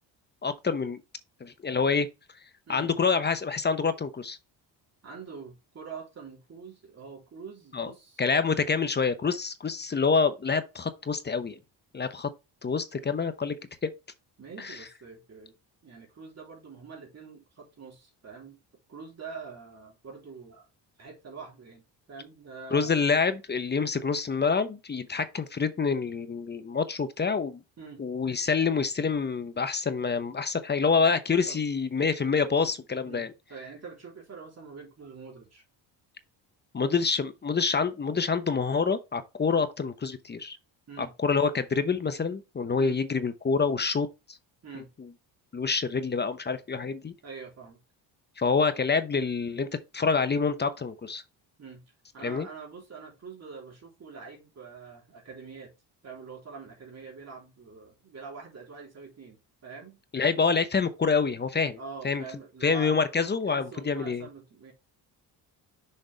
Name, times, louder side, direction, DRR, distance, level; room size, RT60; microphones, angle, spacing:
voice 1, 0.4-1.0 1.4-2.1 2.7-4.4 7.7-7.9 8.2-11.6 11.9-12.3 12.6-13.6 13.8-13.9 14.6-14.8 22.7-27.6 28.0-33.3 36.7-40.6 41.0-44.1 45.5-47.1 48.4-49.7 49.9-51.2 52.2-52.5 60.1-61.8 62.0-62.2 62.6-64.3, left 5 dB, 25° left, 0.8 m, -27 dB
voice 2, 5.0-8.2 14.4-15.6 15.8-18.6 18.9-20.7 21.0-22.9 27.8-28.0 31.5-31.7 33.0-35.6 40.9-41.1 42.8-43.0 44.6-44.9 47.2-47.8 51.6-51.8 52.1-55.7 56.0-60.0 60.3-60.4 61.8-63.0 63.4-64.7, right 5 dB, 35° right, 3.2 m, -45 dB
6.6 x 5.2 x 3.3 m
cardioid pair, 115°, 43 cm